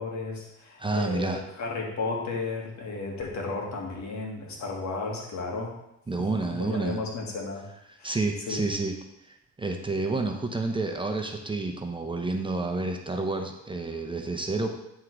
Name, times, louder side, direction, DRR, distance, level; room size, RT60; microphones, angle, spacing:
voice 1, 0.0-5.8 6.2-7.7 8.0-8.2 8.5-8.7, left 3 dB, 70° left, 0 dB, 1.9 m, -34 dB
voice 2, 0.8-1.4 6.1-7.0 7.9-8.9 9.6-14.7, right 3 dB, 15° right, 3 dB, 0.9 m, -29 dB
9.7 x 3.7 x 4.8 m, 0.86 s
cardioid pair, 90°, 30 cm